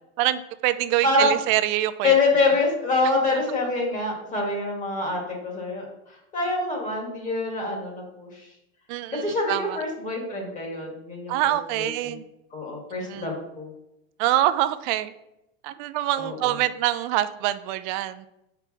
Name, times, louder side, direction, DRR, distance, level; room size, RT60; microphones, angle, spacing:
voice 1, 0.2-2.1 3.1-3.2 8.9-9.8 11.3-12.2 13.1-13.3 14.2-15.1 15.6-18.3, right 14 dB, 45° right, 13 dB, 0.5 m, -25 dB
voice 2, 1.0-1.4 2.0-8.5 9.1-12.2 12.5-13.7 16.2-16.5, left 3 dB, 25° left, 0 dB, 1.9 m, -26 dB
5.2 x 4.7 x 5.8 m, 0.87 s
supercardioid pair, 155°, 33 cm